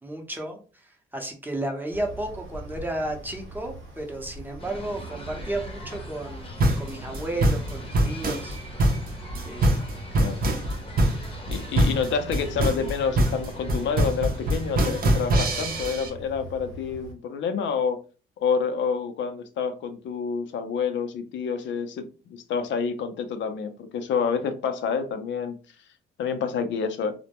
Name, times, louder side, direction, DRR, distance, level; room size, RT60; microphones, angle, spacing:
voice 1, 0.0-8.6 9.4-9.8, right 1 dB, 10° right, 2 dB, 0.7 m, -33 dB
sound 1, 1.9-17.1, right 2 dB, 90° right, 0.8 m, -42 dB
sound 2, 4.6-15.9, left 1 dB, 25° left, 0.7 m, -43 dB
sound 3, 6.6-16.1, right 1 dB, 50° right, 0.6 m, -23 dB
voice 2, 11.5-18.0 18.4-25.6 26.2-27.1, left 6 dB, 70° left, 8 dB, 0.5 m, -28 dB
2.1 x 2.1 x 2.8 m, 0.35 s
cardioid pair, 90°, 20 cm